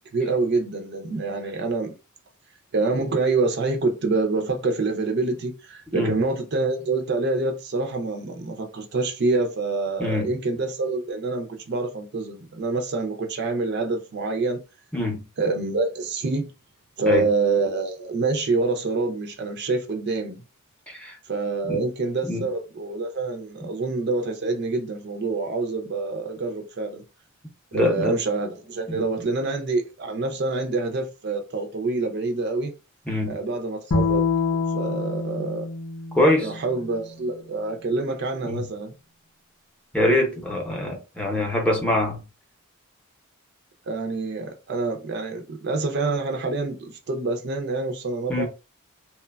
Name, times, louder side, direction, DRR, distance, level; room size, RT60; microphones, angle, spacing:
voice 1, 0.1-1.9 2.7-14.6 15.4-16.5 17.0-20.4 21.3-27.0 27.7-32.7 33.3-34.3 34.7-35.7 36.4-38.9 43.9-48.5, right 3 dB, 50° right, 0.4 m, -26 dB
voice 2, 10.0-10.3 14.9-15.2 17.1-17.2 20.9-21.2 21.6-21.8 22.2-22.5 27.7-28.2 28.9-29.0 33.1-33.4 36.1-36.5 38.5-38.7 39.9-42.2 48.3-48.5, left 1 dB, 5° left, 0.6 m, -24 dB
Bowed string instrument, 33.9-37.2, left 4 dB, 85° left, 0.7 m, -26 dB
3.0 x 2.2 x 2.2 m
head